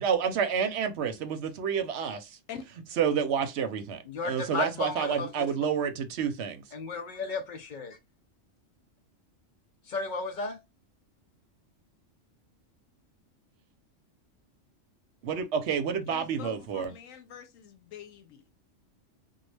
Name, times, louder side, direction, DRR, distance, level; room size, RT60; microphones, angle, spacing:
voice 1, 0.0-2.3 3.0-4.0 4.2-6.6 15.2-16.9, right 7 dB, 65° right, 0.9 m, -29 dB
voice 2, 4.1-5.3 6.7-8.0 9.9-10.6, left 4 dB, 65° left, 0.5 m, -34 dB
voice 3, 16.1-18.4, left 8 dB, 90° left, 1.0 m, -45 dB
3.0 x 2.4 x 3.2 m
omnidirectional pair, 1.3 m